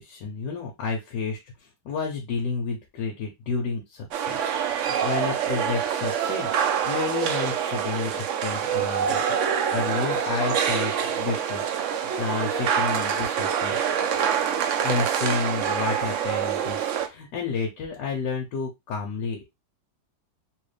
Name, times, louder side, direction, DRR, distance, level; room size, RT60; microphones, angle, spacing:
voice 1, 0.0-6.5 6.9-8.1 8.4-9.2 9.7-11.6 11.9-13.8 14.8-19.4, left 5 dB, 70° left, 0 dB, 1.4 m, -31 dB
sound 1, 4.1-17.1, right 8 dB, 85° right, 0.6 m, -26 dB
3.2 x 3.1 x 3.2 m, 0.21 s
omnidirectional pair, 2.0 m